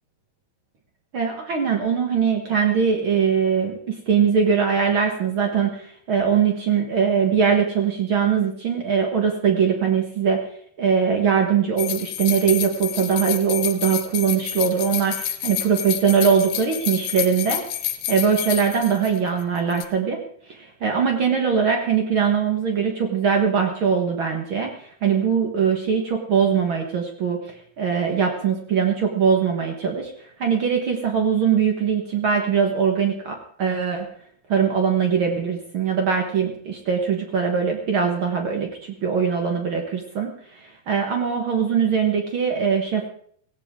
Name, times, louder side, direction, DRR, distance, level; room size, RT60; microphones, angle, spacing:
voice 1, 1.1-10.4 10.8-20.2 20.5-30.1 30.4-34.1 34.5-43.1, right 6 dB, 90° right, 3 dB, 1.1 m, -21 dB
sound 1, 11.8-19.4 19.7-19.9, left 11 dB, 75° left, 2.8 m, -29 dB
17.5 x 16.5 x 3.7 m, 0.62 s
omnidirectional pair, 4.7 m